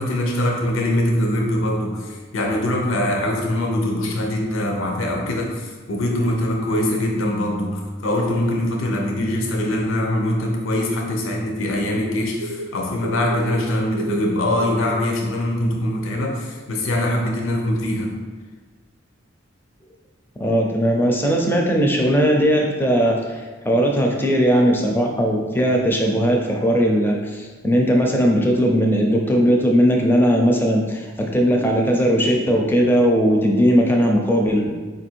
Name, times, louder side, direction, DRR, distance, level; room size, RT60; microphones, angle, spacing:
voice 1, 0.0-18.2, left 1 dB, 80° left, 1 dB, 0.6 m, -23 dB
sound 1, 12.4-13.7 14.0-14.9 16.4-16.5 17.1-17.3, right 1 dB, 70° right, 0.3 m, -32 dB
voice 2, 20.4-34.7, equal, 10° left, 0 dB, 0.5 m, -18 dB
4.7 x 2.6 x 4.4 m, 1.4 s
head